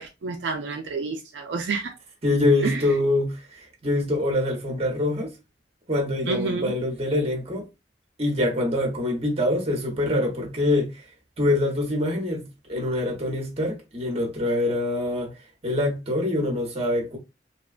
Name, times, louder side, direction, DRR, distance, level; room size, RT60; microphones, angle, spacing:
voice 1, 0.0-1.9 2.6-2.8 6.3-6.7, right 4 dB, 75° right, 0.4 m, -29 dB
voice 2, 2.2-5.3 5.9-7.6 8.2-11.0 11.4-15.3 15.6-17.2, left 1 dB, 35° right, 0.9 m, -25 dB
2.8 x 2.2 x 2.3 m
head